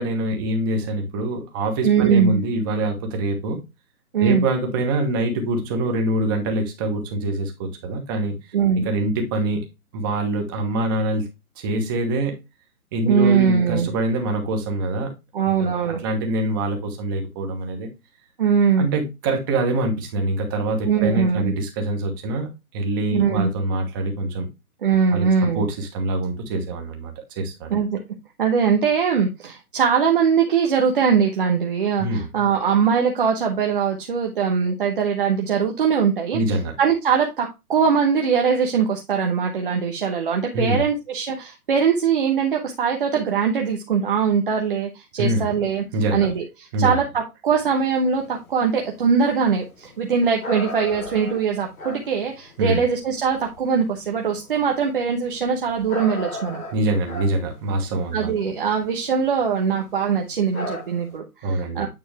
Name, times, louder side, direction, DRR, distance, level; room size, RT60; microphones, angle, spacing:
voice 1, 0.0-3.6 4.2-8.4 8.8-9.6 9.9-11.3 11.6-12.4 12.9-15.1 15.4-17.9 18.8-22.5 22.7-24.5 25.1-25.3 25.5-27.7 32.0-32.2 36.3-36.7 40.5-40.8 45.2-45.5 45.9-46.3 46.7-47.0 52.6-52.8 56.7-58.3 61.4-61.8, right 1 dB, 15° right, 3 dB, 1.1 m, -24 dB
voice 2, 1.8-2.4 4.1-4.4 8.5-8.9 13.1-13.9 15.3-16.0 18.4-18.9 20.8-21.5 23.1-23.5 24.8-25.6 27.7-28.0 28.4-36.4 36.8-45.8 46.1-56.6 58.1-61.9, right 6 dB, 35° right, 2 dB, 1.1 m, -21 dB
sound 1, 47.6-53.6 54.1-59.4 59.8-59.9 60.1-60.3 60.5-61.2, left 1 dB, 70° left, 4.7 m, -35 dB
9.1 x 4.1 x 3.3 m, 0.23 s
hypercardioid pair, 155°, 44 cm